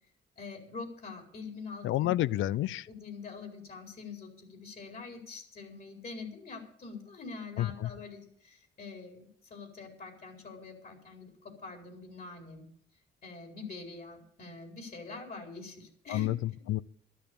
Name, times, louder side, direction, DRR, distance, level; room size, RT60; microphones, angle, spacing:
voice 1, 0.4-2.1 2.9-12.7 13.2-16.3, left 4 dB, 50° left, 4.6 m, -45 dB
voice 2, 1.8-2.9 7.6-7.9 16.1-16.8, left 15 dB, 80° left, 0.5 m, -30 dB
12.5 x 10.5 x 6.9 m
cardioid pair, 90°, 20 cm